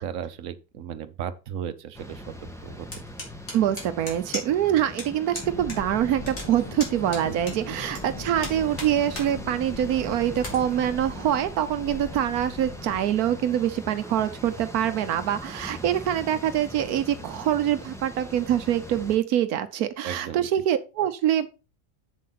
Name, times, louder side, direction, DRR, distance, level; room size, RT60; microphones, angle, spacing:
voice 1, 0.0-2.9 7.3-7.4 20.0-20.5, right 9 dB, 65° right, 1.2 m, -35 dB
sound 1, 1.9-19.2, equal, ahead, 1.4 m, -41 dB
sound 2, 2.9-4.7 5.0-5.1 5.3-5.8 6.0-8.0 8.4-9.3 9.7-9.8 10.3-10.6, left 2 dB, 60° left, 3.4 m, -36 dB
voice 2, 3.5-21.5, right 10 dB, 85° right, 1.2 m, -25 dB
sound 3, 5.4-13.0, left 2 dB, 20° left, 1.1 m, -40 dB
7.6 x 7.5 x 4.1 m
omnidirectional pair, 1.5 m